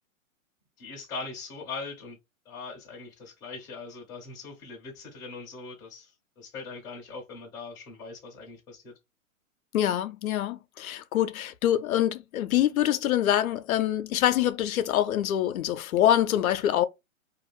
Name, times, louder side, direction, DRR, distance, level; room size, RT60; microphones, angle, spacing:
voice 1, 0.8-2.2 2.5-8.9, left 4 dB, 10° left, 0.5 m, -41 dB
voice 2, 9.7-16.8, left 11 dB, 80° left, 0.5 m, -25 dB
2.5 x 2.3 x 3.1 m
hypercardioid pair, 145°, 41 cm